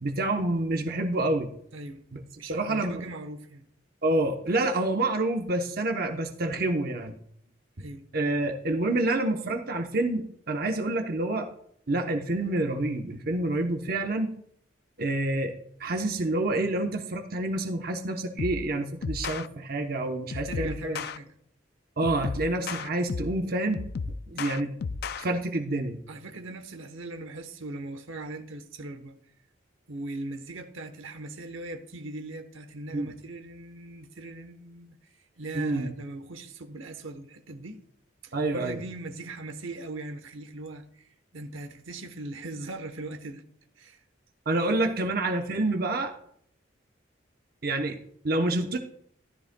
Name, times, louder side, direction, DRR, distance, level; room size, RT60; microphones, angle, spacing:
voice 1, 0.0-1.5 2.1-3.0 4.0-7.2 7.8-7.9 8.1-11.5 11.9-14.3 15.0-15.5 15.8-21.0 22.0-23.8 24.3-24.7 25.2-26.0 32.9-33.1 35.5-35.9 38.3-38.8 44.5-46.1 47.6-48.0 48.2-48.8, right 2 dB, 50° right, 0.8 m, -28 dB
voice 2, 1.7-2.0 2.4-3.7 7.8-8.0 20.3-21.3 26.1-29.2 29.9-37.8 38.2-43.4 43.8-44.0, right 2 dB, 90° right, 1.0 m, -40 dB
sound 1, 18.4-18.7 19.0-19.5 20.3-21.2 22.0-23.4 23.7-25.2, left 5 dB, 55° left, 0.4 m, -34 dB
13.5 x 12.5 x 2.2 m
head